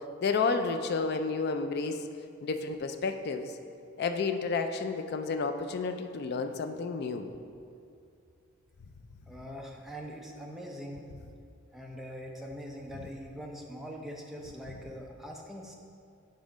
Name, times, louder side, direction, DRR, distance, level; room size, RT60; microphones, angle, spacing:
voice 1, 0.2-2.0 2.4-3.5 4.0-7.3, left 4 dB, 50° left, 7 dB, 0.3 m, -31 dB
voice 2, 9.3-11.0 11.7-15.7, equal, ahead, -1 dB, 0.6 m, -42 dB
7.2 x 3.8 x 5.0 m, 2.4 s
head